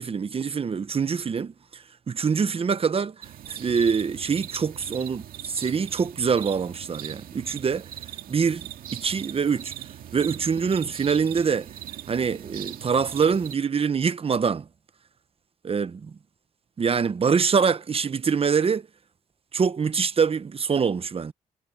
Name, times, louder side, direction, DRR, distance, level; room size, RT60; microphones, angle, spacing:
voice 1, 0.0-3.1 3.5-7.9 8.3-9.7 10.1-11.7 12.1-14.7 15.6-16.1 16.8-18.9 19.5-21.3, right 6 dB, 40° right, 1.0 m, -25 dB
sound 1, 3.2-13.6, right 11 dB, 85° right, 2.2 m, -40 dB
cardioid pair, 85°, 15 cm